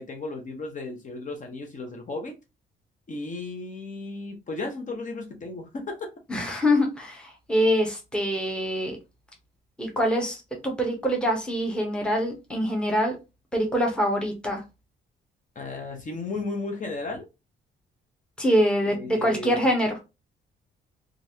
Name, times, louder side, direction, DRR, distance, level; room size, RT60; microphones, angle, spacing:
voice 1, 0.0-2.4 3.1-6.1 15.6-17.3 18.8-19.7, left 3 dB, 40° left, 3 dB, 0.8 m, -34 dB
voice 2, 6.3-9.0 9.8-13.2 13.5-14.6 18.4-20.0, equal, 5° left, 1 dB, 0.9 m, -24 dB
3.0 x 2.5 x 2.7 m, 0.26 s
cardioid pair, 90°, 20 cm